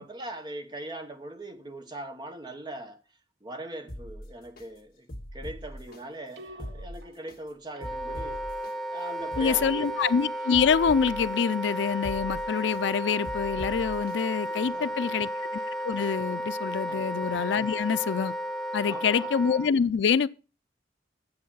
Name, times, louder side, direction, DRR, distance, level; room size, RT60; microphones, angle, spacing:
voice 1, 0.0-3.0 3.4-8.4 8.9-9.9 14.5-15.2 16.9-17.1 18.8-19.3, right 1 dB, 25° right, 1.1 m, -41 dB
sound 1, 3.9-4.6 5.1-6.0 6.5-7.4 7.8-8.7 9.2-10.1 10.5-11.4 11.9-12.8 13.2-14.1 14.6-14.7, equal, 50° left, 2.1 m, -41 dB
sound 2, 5.9-15.7, right 4 dB, 80° right, 0.6 m, -50 dB
Wind instrument woodwind instrument, 7.7-19.7, equal, ahead, 0.6 m, -33 dB
voice 2, 9.4-15.5 15.8-18.3 18.7-20.3, left 6 dB, 75° left, 0.4 m, -26 dB
8.8 x 7.6 x 5.4 m
head